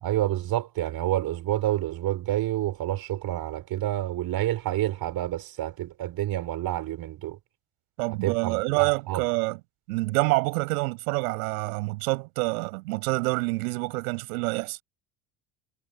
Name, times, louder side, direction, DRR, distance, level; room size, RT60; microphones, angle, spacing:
voice 1, 0.0-7.4 8.2-9.2, right 14 dB, 50° right, 4.7 m, -28 dB
voice 2, 8.0-9.6 9.9-14.8, right 25 dB, 65° right, 7.6 m, -27 dB
figure-of-eight pair, 65°, 46 cm